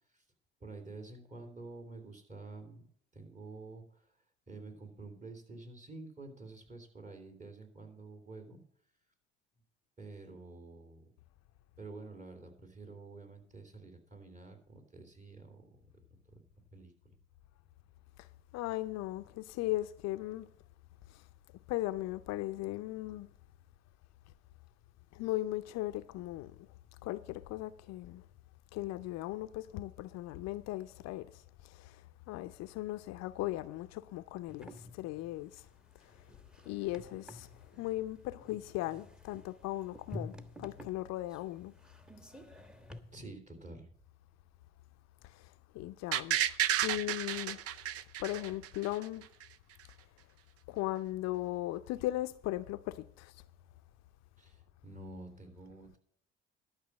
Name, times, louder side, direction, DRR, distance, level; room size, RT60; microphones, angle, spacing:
voice 1, 0.6-2.8 3.1-4.1 4.5-8.6 10.0-11.1 11.8-15.7 16.3-16.4 16.7-17.2 43.1-44.0 54.4-56.0, right 3 dB, 25° right, 3.0 m, -49 dB
voice 2, 18.5-20.5 21.7-23.3 25.1-26.5 27.0-28.2 28.7-31.3 31.8-31.9 32.3-35.5 36.7-37.5 37.8-41.7 45.7-46.4 46.8-47.6 48.2-49.2 50.7-53.3, left 16 dB, 65° left, 0.6 m, -37 dB
sound 1, 34.5-43.0, left 1 dB, 5° right, 1.3 m, -50 dB
sound 2, 46.1-49.0 49.4-49.5, right 11 dB, 55° right, 0.6 m, -32 dB
12.0 x 6.1 x 7.2 m
hypercardioid pair, 55°, 29 cm